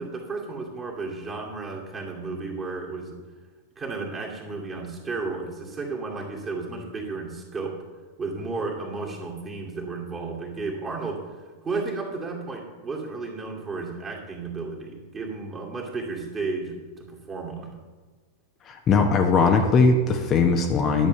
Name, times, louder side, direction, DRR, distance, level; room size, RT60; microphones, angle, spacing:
voice 1, 0.0-3.2 3.8-7.8 8.2-11.2 11.6-17.8, right 3 dB, 20° right, -2 dB, 2.4 m, -33 dB
voice 2, 18.6-21.1, left 4 dB, 30° left, 3 dB, 1.0 m, -20 dB
11.0 x 6.8 x 6.6 m, 1.4 s
figure-of-eight pair, 90°, 0 cm